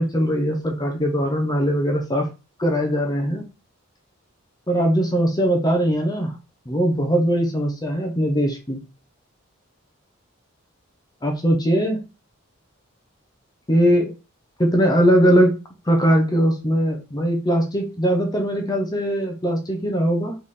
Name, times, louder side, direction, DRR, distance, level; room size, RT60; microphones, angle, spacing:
voice 1, 0.0-2.3 2.6-3.4 4.7-6.3 6.7-8.8 11.2-12.0 13.7-14.1 14.6-15.6 15.9-20.4, equal, 20° left, 3 dB, 0.7 m, -20 dB
3.6 x 3.2 x 4.1 m, 0.30 s
head